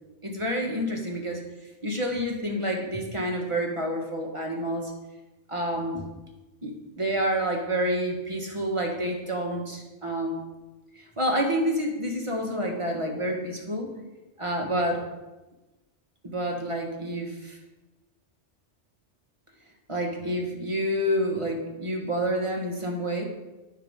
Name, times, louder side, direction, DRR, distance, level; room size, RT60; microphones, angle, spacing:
voice 1, 0.2-1.4 1.8-4.9 5.5-6.1 6.6-10.4 10.9-13.9 14.4-15.0 16.2-17.6 19.9-23.2, equal, 25° right, 0 dB, 1.6 m, -28 dB
15.5 x 5.8 x 3.7 m, 1.1 s
omnidirectional pair, 1.2 m